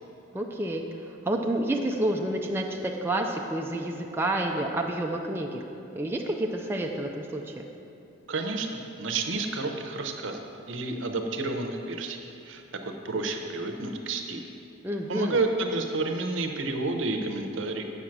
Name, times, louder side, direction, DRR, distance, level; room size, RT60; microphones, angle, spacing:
voice 1, 0.3-0.8 1.3-5.6 5.9-7.7 14.8-15.4, right 1 dB, 10° right, 1 dB, 0.4 m, -29 dB
voice 2, 8.3-8.7 9.0-12.2 12.4-12.6 13.0-14.4 15.1-17.8, right 3 dB, 70° right, 4 dB, 0.7 m, -30 dB
8.0 x 6.4 x 5.9 m, 2.9 s
head